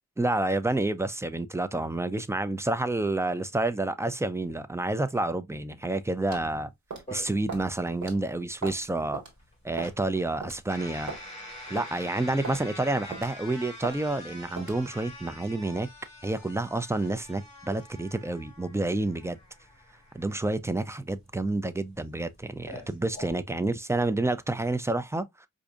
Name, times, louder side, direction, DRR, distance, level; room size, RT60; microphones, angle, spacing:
voice 1, 0.2-6.7 7.1-9.2 9.6-11.1 11.7-15.9 16.2-19.4 20.1-25.5, right 2 dB, 10° right, 0.3 m, -29 dB
sound 1, 6.3-6.5 6.9-7.1 7.5-7.7 8.0-8.2 8.6-8.8 9.1-9.3 9.8-10.0 10.4-10.6 11.1-11.2 11.8-11.9 12.4-12.6 13.1-13.4 13.8-14.0 14.6-14.8, right 4 dB, 75° right, 1.4 m, -38 dB
sound 2, 7.1-23.3, left 1 dB, 20° left, 2.4 m, -46 dB
4.7 x 2.5 x 2.4 m
wide cardioid pair, 90°, 29 cm